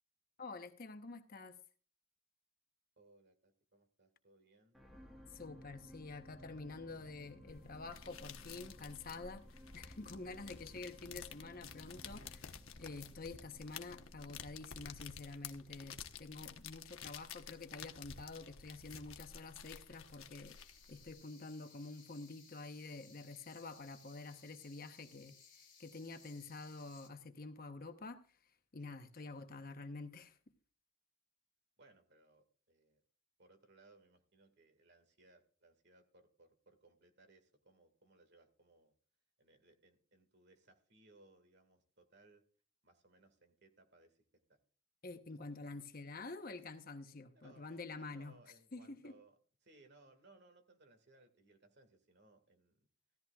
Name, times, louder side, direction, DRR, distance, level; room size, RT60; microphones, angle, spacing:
voice 1, 0.4-1.6 5.3-9.4 9.7-28.4 28.7-30.4 45.0-48.3 48.7-49.1, left 3 dB, 40° left, 0.9 m, -48 dB
voice 2, 3.0-4.8 29.2-29.4 31.8-33.0 33.4-38.9 39.4-42.4 42.8-44.2 44.5-44.6 47.3-52.9, right 2 dB, 50° right, 1.9 m, -66 dB
sound 1, 4.7-17.1 17.7-17.8, equal, ahead, 1.4 m, -60 dB
sound 2, 7.5-21.1, left 7 dB, 75° left, 1.0 m, -52 dB
sound 3, 20.4-27.1, left 6 dB, 20° left, 2.0 m, -62 dB
15.5 x 13.5 x 2.3 m
head